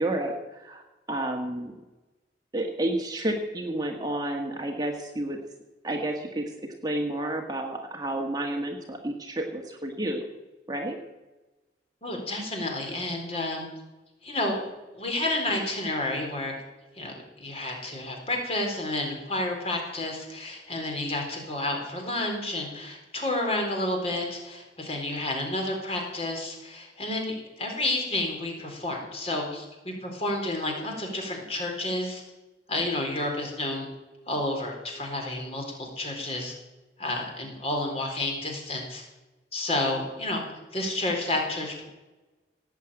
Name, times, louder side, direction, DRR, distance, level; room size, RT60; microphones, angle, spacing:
voice 1, 0.0-1.7 2.5-5.4 5.8-10.3 10.7-11.0, right 1 dB, 20° right, 2 dB, 1.5 m, -30 dB
voice 2, 12.0-13.7 14.2-16.5 17.0-32.2 32.7-33.9 34.3-36.5 37.0-39.0 39.5-40.4 40.7-41.8, left 1 dB, 35° left, 1 dB, 4.0 m, -30 dB
17.5 x 7.6 x 8.9 m, 1.1 s
head